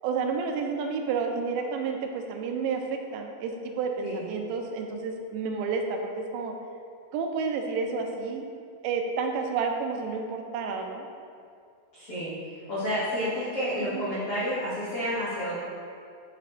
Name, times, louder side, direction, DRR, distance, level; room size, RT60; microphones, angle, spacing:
voice 1, 0.0-6.5 7.1-8.5 8.8-11.1 13.8-14.1, right 5 dB, 85° right, 3 dB, 3.0 m, -30 dB
voice 2, 11.9-12.3 12.7-15.6, equal, 80° left, -11 dB, 1.2 m, -30 dB
9.6 x 5.8 x 3.0 m, 2.3 s
omnidirectional pair, 5.1 m